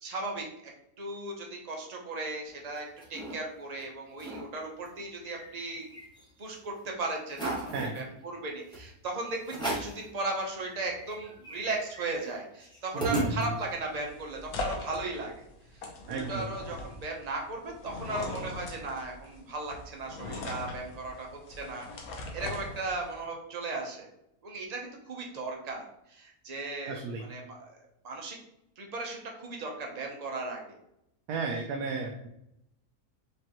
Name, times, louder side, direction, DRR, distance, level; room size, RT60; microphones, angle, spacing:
voice 1, 0.0-0.5 1.0-5.9 6.4-15.5 16.1-24.1 24.4-27.0 27.3-28.4 28.8-30.8, right 2 dB, 35° right, 0 dB, 0.7 m, -37 dB
sound 1, 2.5-3.3 3.8-3.9 4.1-4.4 4.8-6.4 6.8-6.9 7.3-8.0 8.7-8.9 9.4-10.0 10.5-10.6 10.8-13.8, right 2 dB, 5° left, 1.1 m, -37 dB
voice 2, 12.9-13.5 16.1-16.5 26.9-27.3 31.3-32.3, right 4 dB, 85° right, 2 dB, 1.1 m, -33 dB
sound 2, 13.4-23.2, left 2 dB, 70° left, 1.2 m, -41 dB
5.0 x 3.3 x 2.9 m, 0.81 s
omnidirectional pair, 1.6 m